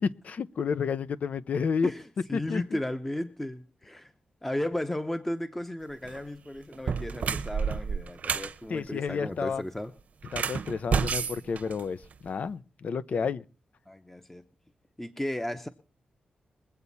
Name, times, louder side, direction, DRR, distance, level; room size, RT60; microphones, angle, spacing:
voice 1, 0.2-1.9 2.3-2.8 8.7-9.6 10.3-13.4, left 5 dB, 60° left, 0.7 m, -31 dB
voice 2, 1.8-4.1 4.4-9.9 13.2-13.3 13.9-14.5 15.0-15.7, left 1 dB, 10° left, 0.9 m, -35 dB
sound 1, 5.9-6.2 6.7-8.5 10.2-12.3, right 6 dB, 65° right, 0.9 m, -30 dB
22.5 x 8.2 x 4.2 m
cardioid pair, 90°, 3 cm